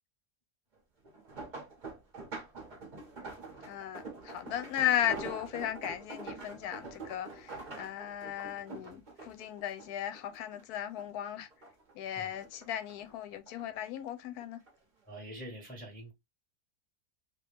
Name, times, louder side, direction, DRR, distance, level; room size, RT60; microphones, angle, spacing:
sound 1, 1.0-10.6 11.0-11.9 12.3-13.7 14.4-14.7 15.1-15.2, right 3 dB, 40° right, 0.7 m, -45 dB
voice 1, 3.7-11.5 12.0-14.6, left 11 dB, 70° left, 1.1 m, -36 dB
voice 2, 15.1-16.1, right 1 dB, 5° left, 0.8 m, -45 dB
3.0 x 2.7 x 3.3 m
omnidirectional pair, 1.8 m